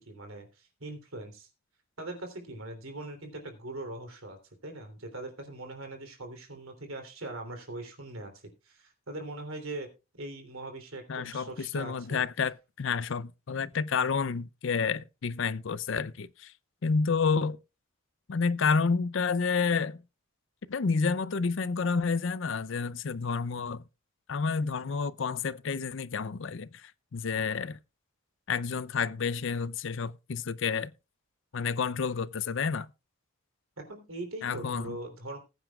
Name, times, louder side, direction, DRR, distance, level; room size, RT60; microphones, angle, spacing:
voice 1, 0.0-1.5 2.0-4.4 4.6-9.9 10.2-12.2 33.8-35.4, right 2 dB, 75° right, 3.1 m, -41 dB
voice 2, 11.1-16.5 16.8-17.6 18.3-20.0 20.7-23.8 24.3-27.8 28.5-30.9 31.5-32.9 34.4-35.0, left 5 dB, 60° left, 0.5 m, -30 dB
20.0 x 9.1 x 2.4 m
head